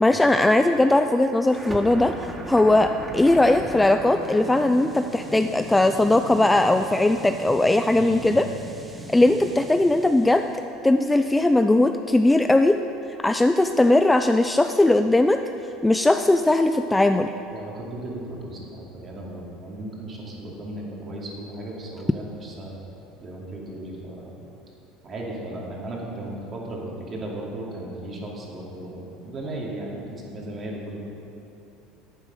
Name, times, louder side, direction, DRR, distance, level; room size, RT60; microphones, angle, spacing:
voice 1, 0.0-2.1 2.5-8.4 9.1-10.5 10.8-12.8 13.2-15.4 15.8-17.3, left 2 dB, 10° left, 8 dB, 0.3 m, -19 dB
sound 1, 1.5-10.6, right 2 dB, 10° right, 1.1 m, -38 dB
voice 2, 8.0-8.5 17.5-22.8 23.2-24.3 25.0-31.0, right 1 dB, 30° right, -3 dB, 2.6 m, -36 dB
10.0 x 8.7 x 6.7 m, 2.9 s
supercardioid pair, 130°, 0 cm